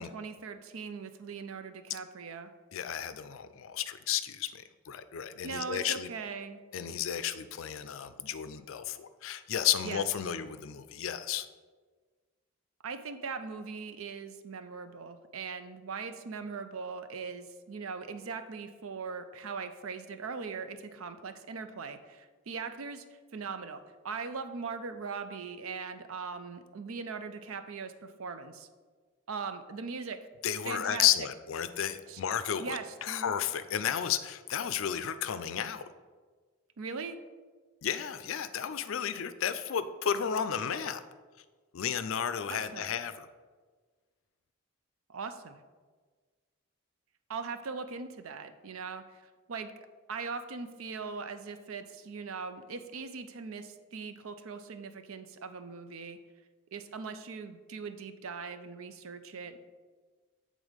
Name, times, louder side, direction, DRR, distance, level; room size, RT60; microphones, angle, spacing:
voice 1, 0.0-2.5 5.4-6.6 9.8-10.0 12.8-23.0 23.3-28.7 29.3-30.2 30.7-31.1 32.1-32.2 32.6-33.3 36.8-37.2 42.5-42.9 45.1-45.6 47.3-49.2 49.5-49.7 50.1-56.2 56.7-59.6, right 5 dB, 80° right, 10 dB, 0.5 m, -40 dB
voice 2, 2.7-6.1 6.7-11.5 30.4-35.8 37.8-41.0 41.7-43.3, left 9 dB, 70° left, 12 dB, 0.4 m, -32 dB
8.1 x 3.8 x 5.0 m, 1.4 s
head